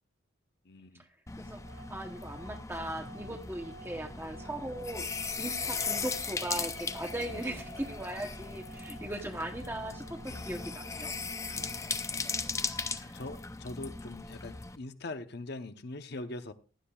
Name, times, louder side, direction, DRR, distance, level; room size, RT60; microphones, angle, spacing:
voice 1, 0.7-1.0 13.1-16.5, left 2 dB, 50° left, 0.8 m, -42 dB
sound 1, 1.3-14.8, left 4 dB, 15° left, 0.5 m, -38 dB
voice 2, 1.4-5.1 5.4-11.1 11.4-11.6 12.7-13.1, right 1 dB, 10° right, 0.9 m, -39 dB
Organ, 1.6-12.6, right 4 dB, 80° right, 3.1 m, -54 dB
15.5 x 12.0 x 2.4 m
head